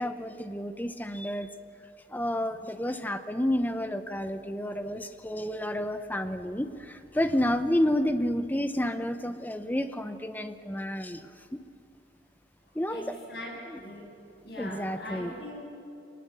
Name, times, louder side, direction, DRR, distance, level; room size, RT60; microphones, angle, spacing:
voice 1, 0.0-1.5 2.1-11.6 12.7-13.0 14.6-15.3, left 1 dB, 10° left, 9 dB, 0.8 m, -30 dB
voice 2, 12.7-14.0 14.4-15.6, left 1 dB, 65° left, -1 dB, 7.9 m, -41 dB
25.0 x 19.5 x 8.3 m, 2.5 s
head